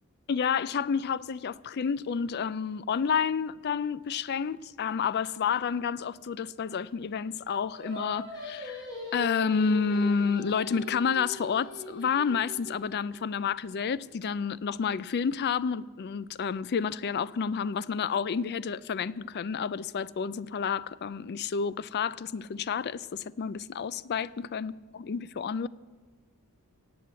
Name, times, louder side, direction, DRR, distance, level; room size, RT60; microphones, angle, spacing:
voice 1, 0.3-8.8 9.1-25.7, left 6 dB, 45° left, 0.4 m, -30 dB
Singing, 7.7-13.1, equal, 20° left, 3.3 m, -41 dB
17.0 x 7.8 x 8.1 m
head